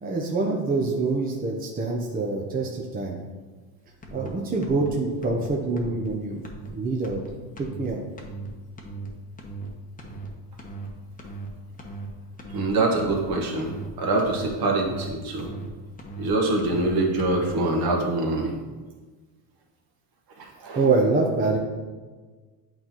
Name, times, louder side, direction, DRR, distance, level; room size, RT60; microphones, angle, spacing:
voice 1, 0.0-3.2 4.1-6.4 6.7-7.2 7.6-8.0 20.8-21.6, right 3 dB, 20° right, -1 dB, 0.7 m, -25 dB
sound 1, 4.0-4.3 4.6-4.9 5.2-5.5 5.8-6.1 6.4-6.7 7.0-7.3 7.6-7.9 8.2-8.5 8.8-9.1 9.4-9.7 10.0-10.3 10.6-10.9 11.2-11.5 11.8-12.1 12.4-12.7 13.0-13.3 13.6-13.9 14.2-14.5 14.8-15.1 15.4-15.7 16.0-16.3 16.6-16.9 17.2-17.5, right 3 dB, 15° left, 0.9 m, -38 dB
voice 2, 12.5-15.5 16.2-18.5 20.4-20.8, right 2 dB, 50° right, 0 dB, 1.5 m, -25 dB
8.7 x 4.1 x 3.0 m, 1.4 s
supercardioid pair, 115°, 47 cm